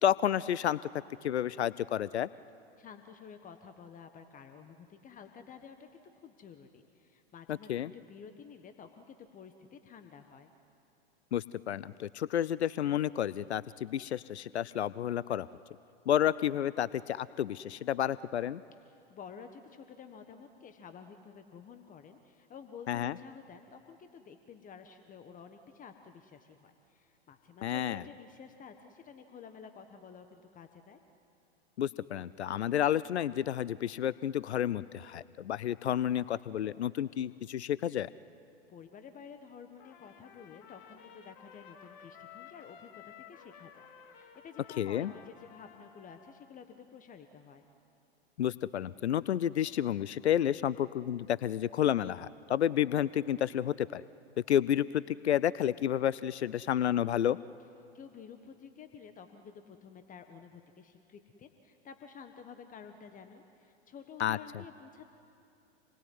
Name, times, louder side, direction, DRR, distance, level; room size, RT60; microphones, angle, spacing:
voice 1, 0.0-0.8 1.2-2.3 7.5-7.9 11.3-15.5 16.1-18.6 22.9-23.1 27.6-28.0 31.8-38.1 44.8-45.1 48.4-54.0 54.5-57.4 64.2-64.4, left 10 dB, 80° left, 19 dB, 0.6 m, -30 dB
voice 2, 2.8-10.5 18.8-31.0 38.7-47.6 57.9-65.1, left 6 dB, 25° left, 7 dB, 1.5 m, -51 dB
Trumpet, 39.8-46.5, left 8 dB, 50° left, 2.5 m, -54 dB
28.0 x 21.5 x 9.4 m, 2.7 s
hypercardioid pair, 100°, 33 cm